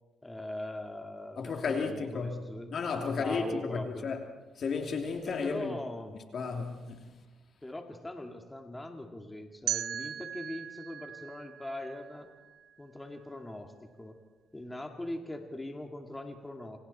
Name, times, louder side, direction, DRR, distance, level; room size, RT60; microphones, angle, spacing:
voice 1, 0.2-2.7 3.0-4.1 5.3-6.2 7.6-12.3 12.8-14.2 14.5-16.8, left 1 dB, 10° left, 2.3 m, -41 dB
voice 2, 1.4-2.4 2.7-3.5 3.7-4.2 4.6-5.8 6.3-7.1, left 5 dB, 55° left, 2.9 m, -33 dB
sound 1, 9.7-12.6, right 10 dB, 80° right, 0.9 m, -38 dB
28.0 x 26.0 x 4.4 m
cardioid pair, 90°, 0 cm